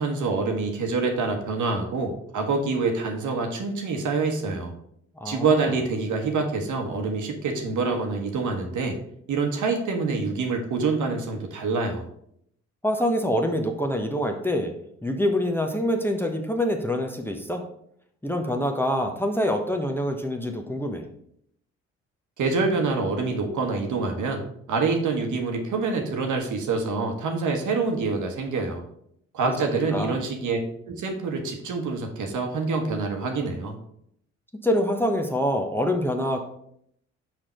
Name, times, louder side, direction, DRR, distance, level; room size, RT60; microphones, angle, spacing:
voice 1, 0.0-4.7 5.2-9.0 9.3-12.1 22.4-24.4 24.7-28.8 29.3-33.7, right 4 dB, 60° right, 4 dB, 1.4 m, -26 dB
voice 2, 5.2-5.7 12.8-14.7 15.0-17.6 18.2-21.1 29.4-29.5 29.9-30.2 34.6-36.4, equal, 5° left, 3 dB, 1.0 m, -25 dB
5.9 x 5.0 x 4.4 m, 0.71 s
hypercardioid pair, 45°, 35 cm